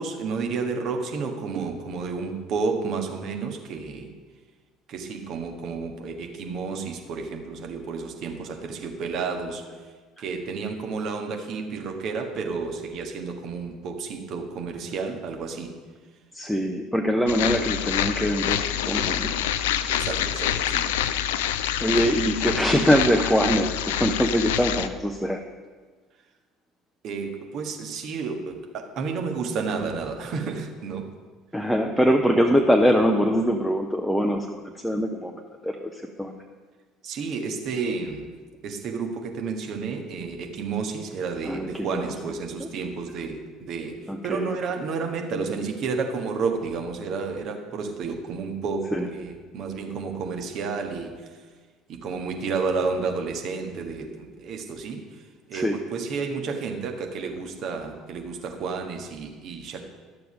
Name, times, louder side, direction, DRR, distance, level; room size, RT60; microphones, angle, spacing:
voice 1, 0.0-4.1 4.9-9.6 10.2-15.7 19.9-20.9 27.0-31.0 37.0-38.2 38.6-44.0 44.2-51.1 51.9-55.0 55.5-59.8, right 4 dB, 50° right, 3 dB, 1.4 m, -31 dB
voice 2, 16.3-19.3 21.8-25.4 31.5-35.3 35.6-36.3 41.4-42.1 42.6-42.7 44.1-44.6 48.9-49.1 55.5-55.8, equal, ahead, 3 dB, 0.7 m, -23 dB
sound 1, 17.3-24.9, left 11 dB, 65° left, 0.4 m, -26 dB
12.0 x 6.8 x 5.1 m, 1.4 s
figure-of-eight pair, 60°, 0 cm